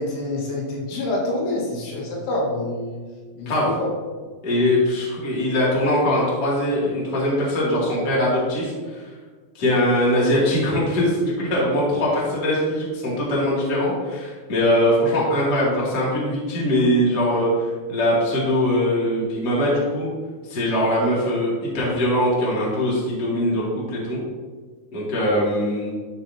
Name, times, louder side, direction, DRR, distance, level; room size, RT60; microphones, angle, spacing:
voice 1, 0.0-3.0 3.4-3.9, left 1 dB, 85° left, -4 dB, 4.2 m, -27 dB
voice 2, 4.4-9.0 9.5-20.1 20.4-24.2 24.9-25.9, equal, 50° left, -7 dB, 1.1 m, -21 dB
12.5 x 4.3 x 2.7 m, 1.5 s
omnidirectional pair, 6.0 m